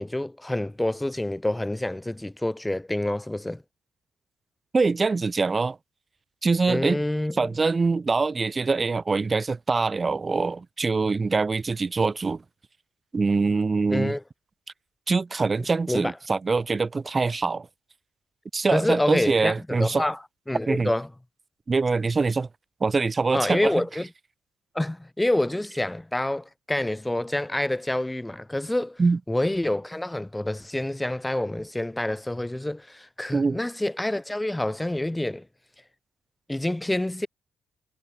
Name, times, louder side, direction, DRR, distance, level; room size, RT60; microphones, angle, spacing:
voice 1, 0.0-3.6 6.7-7.5 13.9-14.2 15.9-16.1 18.7-20.2 20.5-21.1 23.3-24.1 24.7-29.0 29.3-35.4 36.5-37.3, left 1 dB, 10° left, 1.5 m, -27 dB
voice 2, 4.7-5.8 6.4-7.0 7.4-12.4 13.1-14.2 15.1-17.7 18.5-20.0 20.7-20.9 21.7-22.5 22.8-23.7 29.0-29.2 33.3-33.6, right 4 dB, 35° right, 0.8 m, -24 dB
supercardioid pair, 60°, 0 cm